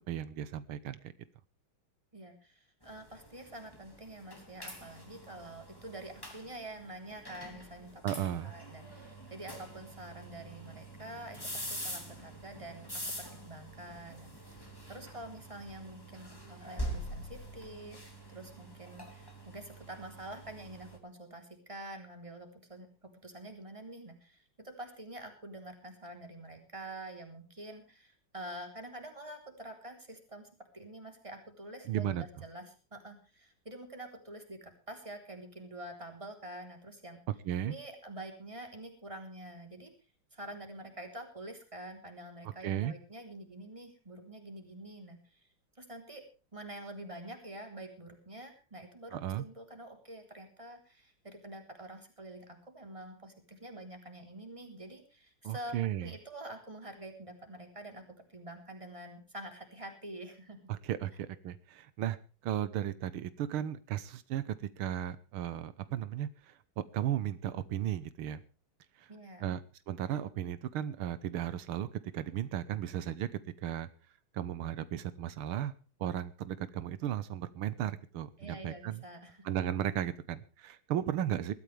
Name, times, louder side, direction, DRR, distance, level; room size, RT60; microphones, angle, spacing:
voice 1, 0.1-1.0 8.0-8.5 31.9-32.3 37.5-37.7 42.6-42.9 49.1-49.5 55.4-56.1 60.7-62.2 62.4-66.6 66.9-68.4 69.0-69.1 69.4-69.6 69.9-71.9 72.1-73.3 73.6-73.9 74.3-75.7 76.0-79.0 79.4-81.5, right 11 dB, 90° right, 14 dB, 1.8 m, -35 dB
voice 2, 2.1-30.5 30.7-37.2 37.6-39.9 40.3-45.4 45.8-46.2 46.5-60.6 69.1-69.6 78.4-79.5, right 1 dB, 15° right, 4 dB, 3.7 m, -47 dB
sound 1, 2.8-21.0, equal, 10° left, 3.1 m, -45 dB
21.0 x 14.0 x 3.4 m, 0.35 s
omnidirectional pair, 2.3 m